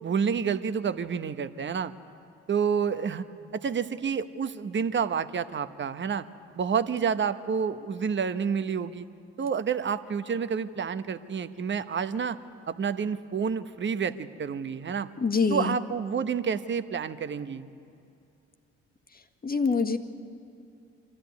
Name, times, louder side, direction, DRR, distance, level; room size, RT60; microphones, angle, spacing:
voice 1, 0.0-1.9 2.5-3.2 3.5-6.3 6.6-9.1 9.4-12.4 12.7-15.1 15.5-17.7, right 6 dB, 40° right, 11 dB, 1.1 m, -29 dB
voice 2, 15.2-15.8 19.4-20.0, left 4 dB, 30° left, 7 dB, 1.6 m, -25 dB
24.5 x 14.0 x 9.6 m, 2.6 s
hypercardioid pair, 55°, 31 cm